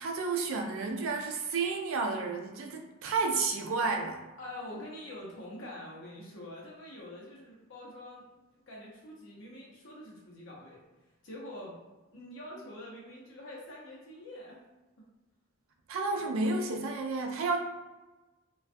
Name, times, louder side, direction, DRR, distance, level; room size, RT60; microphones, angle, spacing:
voice 1, 0.0-4.3 15.9-17.6, right 3 dB, 75° right, 3 dB, 0.4 m, -31 dB
voice 2, 4.4-8.3 8.5-10.8 11.2-11.8 12.1-14.6 15.0-15.1, left 1 dB, 65° left, -4 dB, 0.7 m, -45 dB
2.3 x 2.2 x 2.5 m, 1.1 s
head